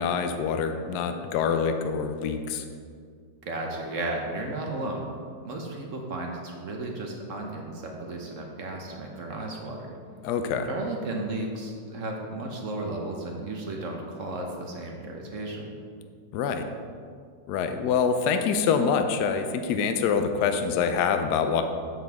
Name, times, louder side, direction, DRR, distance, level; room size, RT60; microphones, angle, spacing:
voice 1, 0.0-2.6 10.2-10.7 16.3-16.7 17.5-21.6, left 6 dB, 75° left, 7 dB, 1.1 m, -25 dB
voice 2, 3.5-5.1 5.4-9.9 10.7-15.8, right 2 dB, 55° right, 1 dB, 1.1 m, -34 dB
7.7 x 7.5 x 3.5 m, 2.1 s
omnidirectional pair, 1.9 m